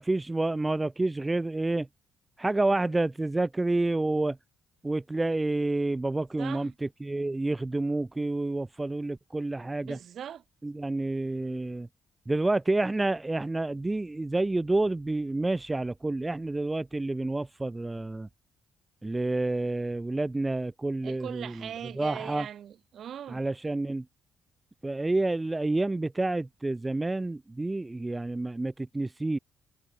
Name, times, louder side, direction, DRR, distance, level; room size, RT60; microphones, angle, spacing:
voice 1, 0.0-1.9 2.4-4.4 4.8-10.0 10.6-11.9 12.3-18.3 19.0-21.7 21.9-22.5 23.3-24.1 24.8-29.4, right 2 dB, 10° right, 1.3 m, -29 dB
voice 2, 6.4-6.7 9.8-10.4 21.0-23.4, right 9 dB, 50° right, 5.8 m, -40 dB
cardioid pair, 165°, 0 cm